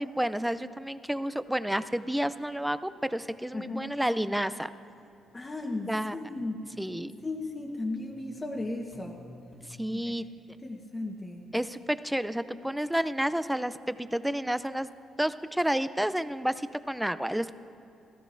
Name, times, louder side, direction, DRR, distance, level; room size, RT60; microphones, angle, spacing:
voice 1, 0.0-4.7 5.9-6.2 6.8-7.2 9.8-10.2 11.5-14.9 15.2-17.5, equal, 5° right, 13 dB, 0.4 m, -30 dB
sound 1, 3.2-3.5 4.2-4.5 5.1-5.3 5.9-9.8, equal, 20° right, 2.9 m, -56 dB
voice 2, 3.5-3.9 5.3-6.7 7.2-9.2 9.9-10.0 10.6-11.4, left 2 dB, 25° left, 0 dB, 1.1 m, -35 dB
17.5 x 14.0 x 2.6 m, 2.8 s
cardioid pair, 90°, 0 cm